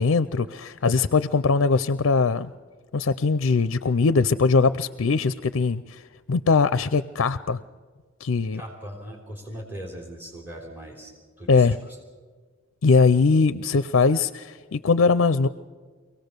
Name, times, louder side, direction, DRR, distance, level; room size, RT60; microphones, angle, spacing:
voice 1, 0.0-2.5 2.9-6.0 6.3-7.6 8.2-8.6 11.5-11.8 12.8-15.5, left 4 dB, 70° left, 14 dB, 0.5 m, -21 dB
voice 2, 8.5-12.0, equal, 10° right, -1 dB, 3.4 m, -40 dB
24.0 x 17.5 x 6.7 m, 1.5 s
head